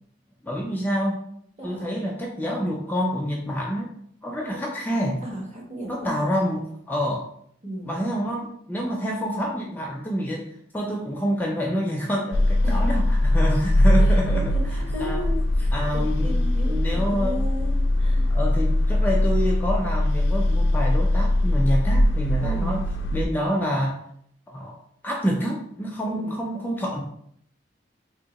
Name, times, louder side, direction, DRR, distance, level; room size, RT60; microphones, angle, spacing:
voice 1, 0.4-1.2 1.6-3.9 4.2-5.2 5.9-7.3 7.8-10.5 10.7-14.6 15.0-15.2 15.7-16.4 16.7-17.4 18.3-22.8 23.1-24.0 24.5-24.8 25.0-27.0, equal, 10° left, -1 dB, 0.4 m, -27 dB
voice 2, 5.2-6.3 7.6-8.0 12.6-12.8 14.0-15.4 15.6-18.3 22.4-22.8 26.1-26.4, equal, 35° right, -2 dB, 1.1 m, -35 dB
sound 1, 12.3-23.3, left 1 dB, 70° left, 0.4 m, -21 dB
2.9 x 2.8 x 4.0 m, 0.67 s
head